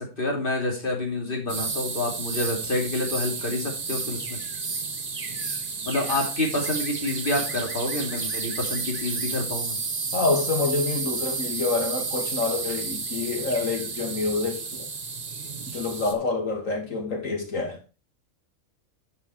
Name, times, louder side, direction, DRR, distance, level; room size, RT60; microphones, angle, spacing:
voice 1, 0.0-4.4 5.8-9.8, left 2 dB, 40° left, 2.9 m, -28 dB
sound 1, 1.5-16.1, right 4 dB, 40° right, 1.5 m, -31 dB
voice 2, 10.1-14.9 15.7-17.8, left 3 dB, 65° left, 2.7 m, -27 dB
11.0 x 5.5 x 4.6 m
omnidirectional pair, 1.5 m